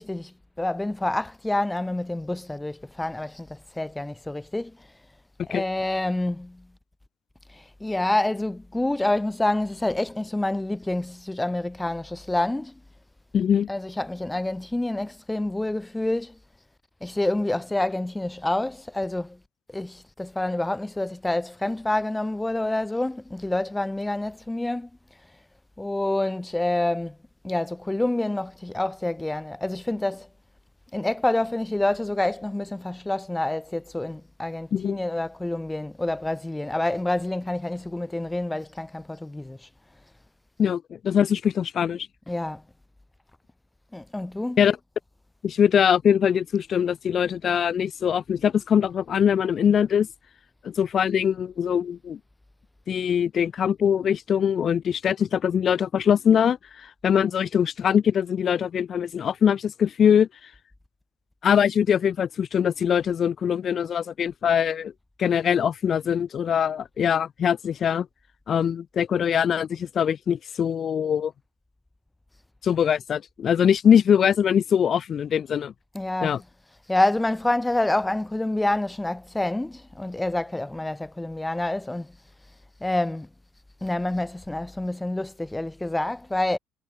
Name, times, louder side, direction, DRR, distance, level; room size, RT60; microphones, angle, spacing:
voice 1, 0.0-4.7 5.5-6.6 7.6-12.7 13.7-16.3 17.0-19.4 19.7-24.9 25.8-27.2 27.4-30.3 30.9-39.6 42.3-42.6 43.9-44.7 75.9-76.4 76.9-82.1 82.8-83.3 83.8-86.6, left 1 dB, 10° left, 1.4 m, -27 dB
voice 2, 13.3-13.7 34.7-35.0 40.6-42.1 44.6-44.8 45.4-50.1 50.6-52.2 52.9-60.5 61.4-64.9 65.2-68.1 68.5-71.3 72.6-75.7 76.2-76.4, left 8 dB, 45° left, 1.1 m, -22 dB
figure-of-eight pair, 55°, 0 cm